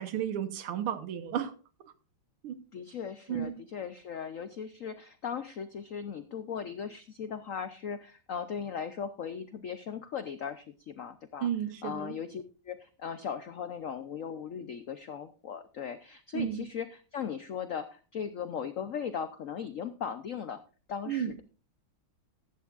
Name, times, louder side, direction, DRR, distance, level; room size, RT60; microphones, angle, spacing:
voice 1, 0.0-1.5 2.4-2.6 3.3-3.6 11.4-12.2 16.3-16.6 21.1-21.4, right 9 dB, 90° right, 11 dB, 1.9 m, -33 dB
voice 2, 2.7-11.5 11.8-20.6 20.9-21.4, left 7 dB, 80° left, 11 dB, 0.7 m, -38 dB
15.0 x 12.0 x 2.4 m, 0.35 s
omnidirectional pair, 2.3 m